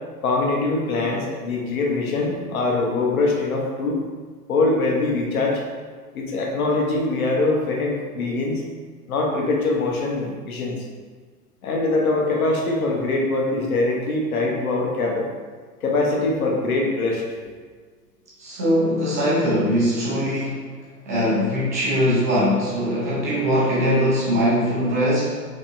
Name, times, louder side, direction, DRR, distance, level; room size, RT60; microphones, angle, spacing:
voice 1, 0.2-4.0 4.5-5.6 6.1-8.6 9.1-10.8 11.6-15.3 15.8-17.2, left 2 dB, 60° left, -1 dB, 1.0 m, -23 dB
voice 2, 18.4-20.7 21.1-25.4, equal, 10° right, -8 dB, 0.3 m, -21 dB
5.3 x 3.4 x 2.6 m, 1.5 s
figure-of-eight pair, 100°, 48 cm